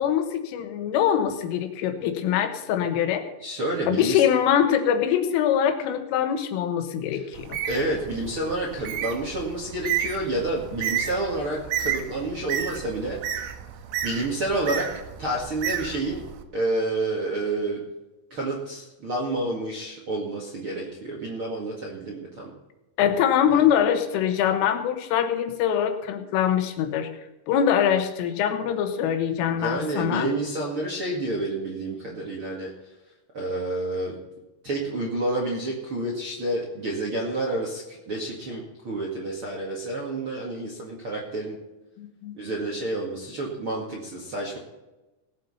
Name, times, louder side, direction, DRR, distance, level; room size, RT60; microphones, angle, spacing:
voice 1, 0.0-3.2 3.9-7.6 23.0-27.1 27.5-30.3 42.0-42.4, left 9 dB, 85° left, 6 dB, 3.8 m, -23 dB
voice 2, 3.4-4.2 7.7-13.2 14.0-14.9 15.2-16.2 16.5-17.8 18.3-22.5 29.5-32.7 33.3-34.2 34.6-41.6 42.3-44.6, right 2 dB, 45° right, -2 dB, 1.7 m, -29 dB
Bird, 7.3-16.4, right 9 dB, 80° right, 3.4 m, -32 dB
19.0 x 7.9 x 5.6 m, 1.0 s
omnidirectional pair, 5.6 m